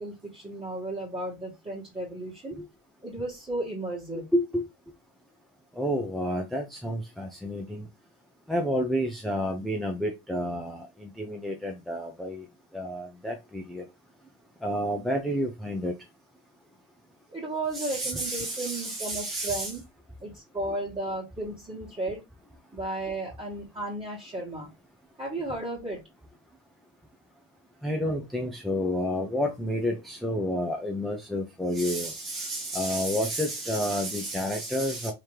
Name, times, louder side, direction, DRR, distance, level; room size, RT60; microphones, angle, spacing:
voice 1, 0.0-2.6 3.0-4.2 17.3-19.8 20.2-22.2 22.7-24.7 25.2-26.0, right 2 dB, 15° right, 1.6 m, -34 dB
voice 2, 4.3-4.6 5.8-7.9 8.5-12.4 12.7-13.8 14.6-15.9 17.7-19.7 27.8-35.1, equal, ahead, 0.6 m, -30 dB
3.3 x 2.9 x 3.2 m
hypercardioid pair, 95°, 32 cm